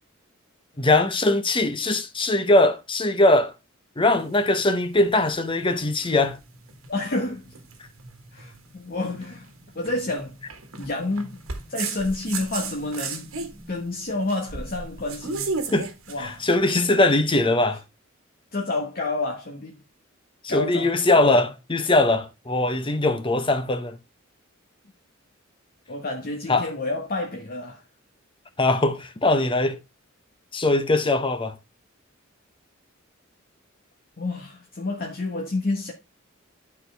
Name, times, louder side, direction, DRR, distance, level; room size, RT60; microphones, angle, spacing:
voice 1, 0.8-3.5 4.0-6.4 15.7-15.9 16.2-17.8 20.4-24.0 26.5-26.7 28.6-29.8 30.5-31.5, left 2 dB, 25° left, 0.9 m, -21 dB
sound 1, 4.0-17.2, right 4 dB, 85° right, 1.6 m, -36 dB
voice 2, 6.9-7.5 8.3-9.5 9.7-10.4 10.8-11.4 11.7-13.3 13.7-15.5 16.1-16.4 18.5-19.8 20.5-21.5 25.9-27.8 34.2-35.9, left 2 dB, 45° left, 1.3 m, -29 dB
12.0 x 4.6 x 3.4 m
head